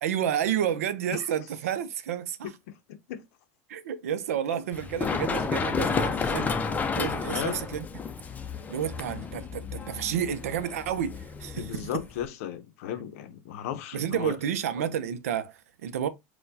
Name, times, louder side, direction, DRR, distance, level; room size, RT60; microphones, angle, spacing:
voice 1, 0.0-2.5 3.7-7.9 8.7-12.0 13.9-16.1, right 9 dB, 90° right, 0.4 m, -30 dB
voice 2, 2.7-3.2 7.3-7.6 11.6-14.4, left 10 dB, 75° left, 0.6 m, -35 dB
Run, 4.7-12.3, left 5 dB, 20° left, 0.4 m, -31 dB
4.3 x 2.2 x 2.6 m
supercardioid pair, 105°, 8 cm